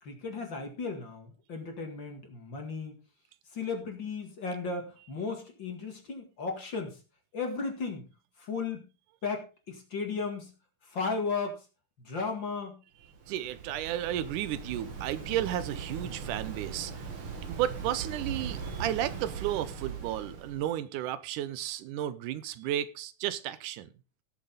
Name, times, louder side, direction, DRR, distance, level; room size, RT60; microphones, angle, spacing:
voice 1, 0.0-3.0 3.5-7.0 7.3-8.0 8.4-8.8 9.2-10.5 10.8-11.6 12.0-12.8, left 4 dB, 40° left, 2.3 m, -35 dB
Waves surf, 13.0-20.7, right 6 dB, 45° right, 2.6 m, -40 dB
voice 2, 13.3-17.1 17.5-23.9, right 12 dB, 80° right, 2.2 m, -33 dB
18.0 x 7.0 x 3.9 m
omnidirectional pair, 3.7 m